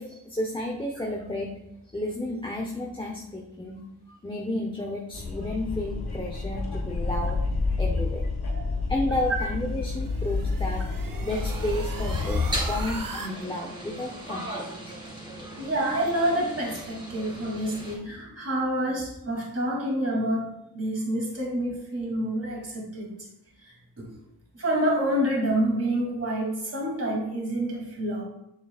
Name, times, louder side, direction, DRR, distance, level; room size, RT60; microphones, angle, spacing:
voice 1, 0.0-1.5 1.8-3.8 4.1-7.4 7.8-8.2 8.9-10.8 11.2-14.9, left 1 dB, 15° left, 0 dB, 0.9 m, -32 dB
sound 1, 5.1-13.0, left 3 dB, 80° left, 1.3 m, -29 dB
sound 2, 9.3-13.3, right 4 dB, 60° right, 0.9 m, -40 dB
sound 3, 11.3-18.0, right 1 dB, 10° right, 2.9 m, -38 dB
voice 2, 15.6-20.5 20.7-23.1 23.6-24.1 24.5-28.3, right 1 dB, 40° right, -3 dB, 2.7 m, -28 dB
9.0 x 6.9 x 2.4 m, 0.85 s
wide cardioid pair, 85°, 37 cm